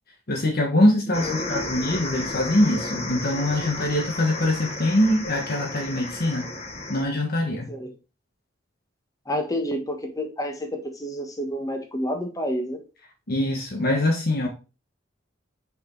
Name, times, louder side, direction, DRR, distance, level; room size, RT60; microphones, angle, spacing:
voice 1, 0.3-6.5 6.9-7.7 13.3-14.5, left 1 dB, 55° left, 1.3 m, -23 dB
sound 1, 1.1-7.0, left 2 dB, 35° left, 1.3 m, -33 dB
voice 2, 1.2-2.0 7.7-7.9 9.3-10.7 11.0-12.8, equal, 20° left, 1.3 m, -29 dB
6.0 x 5.2 x 3.9 m
head